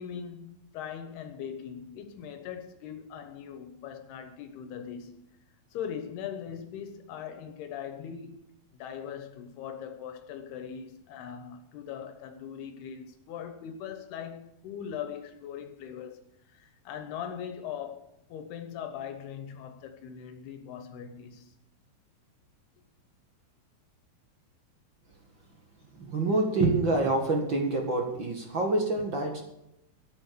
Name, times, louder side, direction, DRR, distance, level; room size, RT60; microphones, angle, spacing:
voice 1, 0.0-5.2 5.7-8.4 8.7-21.5, left 8 dB, 85° left, 3.1 m, -40 dB
voice 2, 25.9-29.4, right 2 dB, 45° right, 1.7 m, -27 dB
13.5 x 9.9 x 6.8 m
omnidirectional pair, 4.5 m